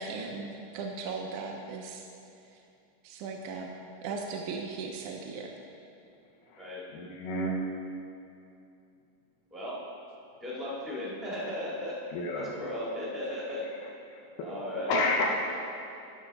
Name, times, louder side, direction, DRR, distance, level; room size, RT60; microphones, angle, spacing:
voice 1, 0.0-2.1 3.0-3.8 4.0-5.5, right 4 dB, 75° right, 1 dB, 1.9 m, -37 dB
voice 2, 6.5-7.6 12.1-12.5 14.1-14.5 14.9-15.3, left 2 dB, 80° left, -1 dB, 2.7 m, -30 dB
voice 3, 10.4-12.0 12.3-13.6 14.4-14.9, left 1 dB, ahead, -7 dB, 0.7 m, -36 dB
13.5 x 5.9 x 4.1 m, 2.6 s
omnidirectional pair, 3.9 m